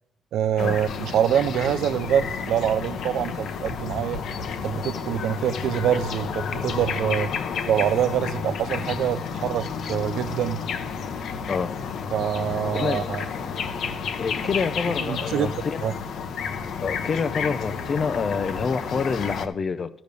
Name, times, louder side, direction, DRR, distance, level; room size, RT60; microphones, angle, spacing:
voice 1, 0.3-4.2 4.6-7.3 7.7-10.6 12.1-13.2 15.0-15.5 15.8-15.9, right 10 dB, 75° right, 0.5 m, -25 dB
sound 1, 0.6-19.5, left 6 dB, 70° left, 0.9 m, -31 dB
voice 2, 14.2-15.9 16.8-19.9, left 5 dB, 45° left, 0.6 m, -27 dB
12.5 x 5.0 x 6.8 m
cardioid pair, 90°, 0 cm